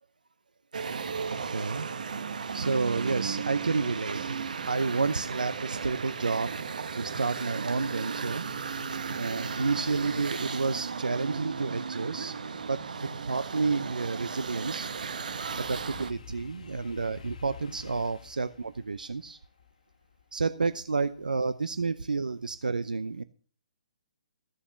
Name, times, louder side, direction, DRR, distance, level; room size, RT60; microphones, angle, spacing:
sound 1, 0.7-16.1, right 5 dB, 75° right, 1.1 m, -35 dB
voice 1, 1.3-1.9 2.5-6.5 6.9-8.4 9.1-12.3 12.7-14.9 15.6-19.4 20.3-23.2, right 4 dB, 90° right, 13 dB, 0.7 m, -30 dB
sound 2, 14.4-21.5 21.9-22.3, left 7 dB, 65° left, 1.4 m, -51 dB
15.0 x 7.1 x 6.1 m, 0.42 s
hypercardioid pair, 140°, 4 cm